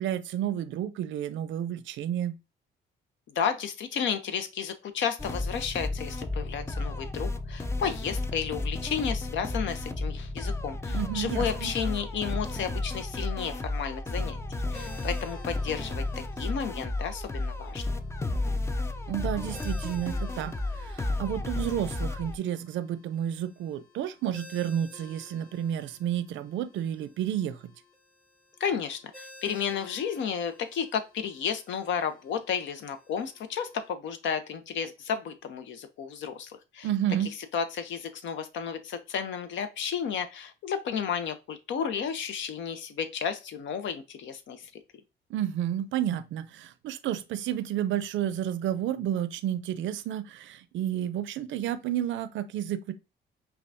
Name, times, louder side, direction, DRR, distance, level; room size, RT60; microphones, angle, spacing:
voice 1, 0.0-2.4 10.9-11.7 19.1-27.7 36.8-37.3 45.3-52.9, right 10 dB, 75° right, 0.5 m, -31 dB
voice 2, 3.3-14.4 14.7-16.0 16.4-18.0 28.6-36.9 37.5-44.7, left 7 dB, 70° left, 0.7 m, -32 dB
sound 1, 5.2-22.4, left 2 dB, 15° left, 0.4 m, -33 dB
Ringtone, 14.7-33.9, left 2 dB, 45° left, 2.2 m, -54 dB
5.6 x 2.3 x 2.6 m
cardioid pair, 90°, 20 cm